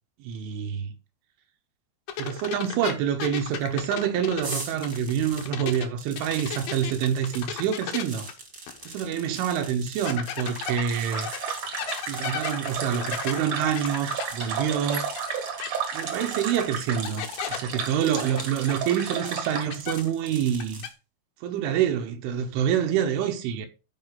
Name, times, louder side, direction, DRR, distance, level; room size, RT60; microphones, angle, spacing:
voice 1, 0.2-1.0 2.2-8.3 8.9-11.3 12.1-15.1 15.9-20.9 21.4-23.7, right 9 dB, 80° right, 3.3 m, -27 dB
sound 1, 2.1-5.9 6.2-9.1 9.4-9.5 10.1-15.3 15.6-15.7 16.6-16.7 17.0-17.6 18.2-20.3 20.5-20.9, left 10 dB, 70° left, 2.4 m, -35 dB
sound 2, 4.4-20.9, right 3 dB, 45° right, 1.2 m, -43 dB
sound 3, 10.4-19.7, right 6 dB, 65° right, 1.7 m, -33 dB
13.0 x 5.0 x 3.7 m
omnidirectional pair, 5.6 m